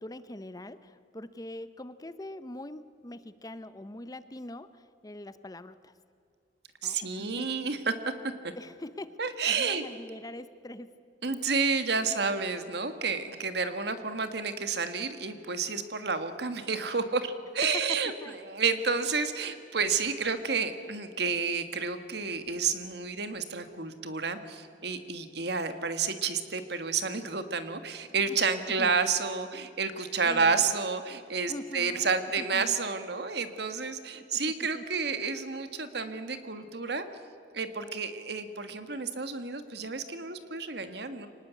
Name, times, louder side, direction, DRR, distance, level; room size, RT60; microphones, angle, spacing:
voice 1, 0.0-5.9 6.8-7.5 8.6-9.1 9.5-11.0 12.0-12.1 17.6-18.3 28.3-28.4 28.8-29.0 30.2-30.7 31.5-32.1 32.4-32.7 34.2-34.4 34.7-34.8 35.9-36.1, left 1 dB, 20° left, 13 dB, 0.7 m, -43 dB
voice 2, 6.8-7.9 8.4-8.5 9.2-9.9 11.2-18.1 18.4-37.0 37.5-41.3, right 5 dB, 60° right, 9 dB, 1.7 m, -30 dB
24.5 x 19.5 x 8.3 m, 2.3 s
head